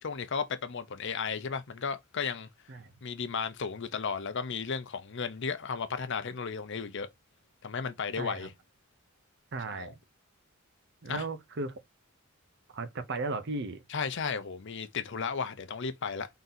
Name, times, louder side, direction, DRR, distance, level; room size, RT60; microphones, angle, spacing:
voice 1, 0.0-2.5 3.0-7.1 7.6-8.5 9.7-9.9 11.1-11.2 13.9-16.3, left 5 dB, 55° left, 0.6 m, -34 dB
voice 2, 8.2-8.5 9.5-10.0 11.0-11.8 12.7-13.8, right 3 dB, 50° right, 0.6 m, -36 dB
3.8 x 2.8 x 3.9 m
head